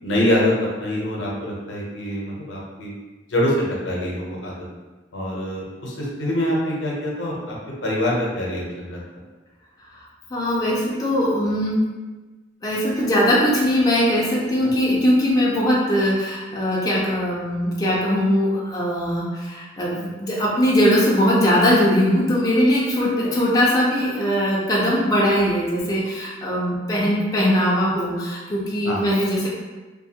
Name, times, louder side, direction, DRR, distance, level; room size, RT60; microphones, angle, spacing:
voice 1, 0.0-2.9 3.3-4.6 5.1-7.5 7.8-9.0 14.6-14.7 23.2-23.3 28.8-29.1, left 1 dB, 90° left, -3 dB, 0.7 m, -24 dB
voice 2, 9.9-11.8 12.6-29.5, equal, 20° left, -6 dB, 0.4 m, -20 dB
2.6 x 2.3 x 2.7 m, 1.2 s
head